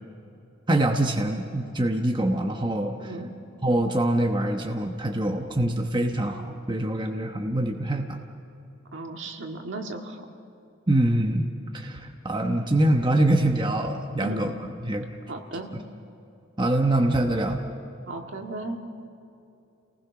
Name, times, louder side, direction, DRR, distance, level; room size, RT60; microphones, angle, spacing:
voice 1, 0.7-3.0 3.6-8.2 10.9-11.5 11.7-14.5 14.8-15.1 16.6-17.6, right 1 dB, 25° right, 3 dB, 1.0 m, -24 dB
voice 2, 3.0-3.4 8.9-10.2 14.2-14.5 15.3-15.7 18.1-18.8, right 2 dB, 65° right, 3 dB, 1.9 m, -35 dB
28.5 x 19.5 x 5.9 m, 2.8 s
head